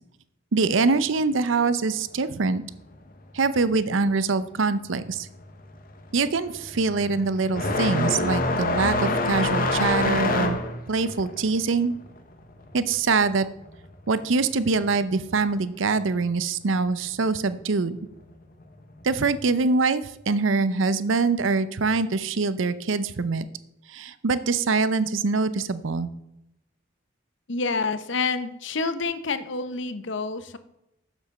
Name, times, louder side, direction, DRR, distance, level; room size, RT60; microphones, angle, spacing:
voice 1, 0.5-2.6 3.3-5.3 6.1-10.6 10.9-11.9 12.7-13.5 14.1-18.0 19.0-23.5 23.9-26.1, right 4 dB, 70° right, 14 dB, 0.6 m, -24 dB
sound 1, 5.0-5.3 5.6-13.9 14.2-15.2 16.2-16.3 17.1-17.2 19.0-19.1, left 2 dB, 45° left, 1.0 m, -26 dB
voice 2, 27.5-30.6, left 4 dB, 65° left, 12 dB, 0.7 m, -28 dB
7.2 x 7.2 x 6.5 m, 0.85 s
head